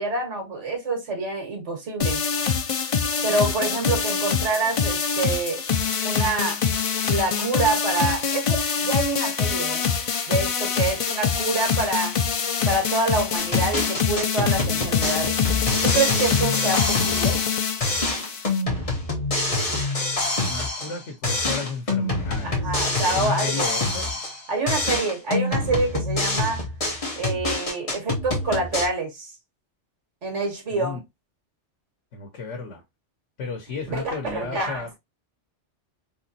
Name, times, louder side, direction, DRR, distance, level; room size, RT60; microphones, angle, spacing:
voice 1, 0.0-2.2 3.2-5.7 6.0-6.7 7.1-9.9 10.3-12.2 12.7-15.4 15.8-17.4 22.4-23.7 24.5-26.7 27.2-29.3 30.2-31.0 33.9-35.0, right 3 dB, 80° right, 1.8 m, -26 dB
sound 1, 2.0-18.6, left 6 dB, 60° left, 0.3 m, -25 dB
sound 2, 13.4-17.5 17.8-21.0 21.2-24.4 24.7-28.9, left 2 dB, 30° left, 1.1 m, -26 dB
voice 2, 20.5-24.2 30.7-31.0 32.1-32.8 33.4-34.9, left 5 dB, 85° left, 1.2 m, -34 dB
3.8 x 2.9 x 2.7 m
omnidirectional pair, 1.2 m